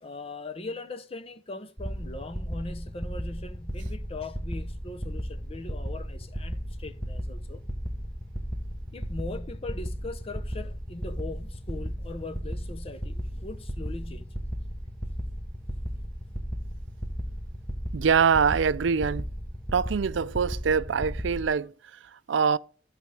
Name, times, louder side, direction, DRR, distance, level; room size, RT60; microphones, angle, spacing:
voice 1, 0.0-7.6 8.9-14.3, left 2 dB, 30° left, 0.7 m, -40 dB
sound 1, 1.8-21.5, equal, 5° left, 0.8 m, -35 dB
voice 2, 17.9-19.3 19.7-22.6, right 6 dB, 80° right, 0.4 m, -24 dB
14.0 x 5.0 x 3.3 m
head